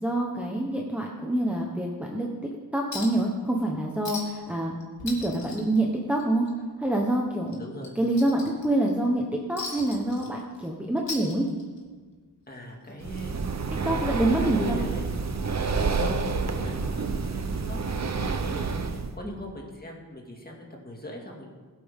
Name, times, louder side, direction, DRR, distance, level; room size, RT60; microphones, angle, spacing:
voice 1, 0.0-2.3 2.7-4.8 5.0-6.5 6.8-7.6 8.0-11.4 13.8-14.8 19.2-19.4, right 1 dB, 5° right, -2 dB, 1.1 m, -26 dB
Chink clink, 2.9-3.3 3.6-3.7 4.0-4.5 4.8-6.5 6.8-7.0 7.5-8.9 9.6-10.7 11.0-11.9 13.0-13.1, left 3 dB, 90° left, 2.6 m, -38 dB
voice 2, 7.6-8.0 12.5-15.1 15.5-21.5, left 1 dB, 20° left, 0 dB, 2.2 m, -41 dB
Breathing, 13.0-19.1, right 4 dB, 40° right, 0.8 m, -29 dB
21.5 x 8.6 x 3.7 m, 1.5 s
wide cardioid pair, 140°, 42 cm